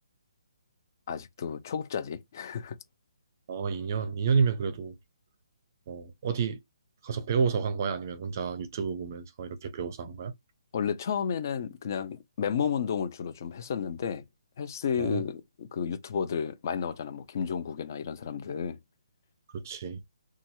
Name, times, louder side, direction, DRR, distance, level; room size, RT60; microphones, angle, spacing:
voice 1, 1.1-2.7 10.7-14.2 14.6-18.8, left 7 dB, 35° left, 0.6 m, -32 dB
voice 2, 3.5-4.9 5.9-6.6 7.0-10.3 15.0-15.2 19.5-20.0, right 5 dB, 30° right, 0.6 m, -30 dB
3.0 x 2.3 x 2.7 m
hypercardioid pair, 170°, 3 cm